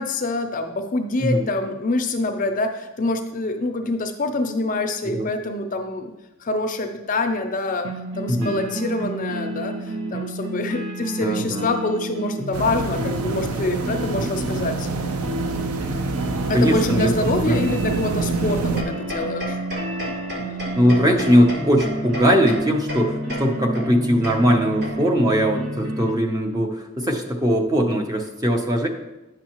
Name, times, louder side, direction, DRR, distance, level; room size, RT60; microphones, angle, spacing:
voice 1, 0.0-6.1 6.4-7.9 8.2-14.9 16.5-19.6, left 2 dB, 35° left, 6 dB, 0.5 m, -25 dB
sound 1, 7.8-26.1, right 1 dB, 65° right, 1.1 m, -31 dB
voice 2, 11.2-11.7 14.1-14.3 16.5-17.1 17.5-17.6 20.8-28.9, equal, 15° right, 2 dB, 0.6 m, -20 dB
sound 2, 12.5-18.8, right 4 dB, 90° right, 0.6 m, -26 dB
sound 3, 18.8-25.3, equal, 45° right, 1.5 m, -34 dB
10.0 x 6.3 x 2.9 m, 0.99 s
head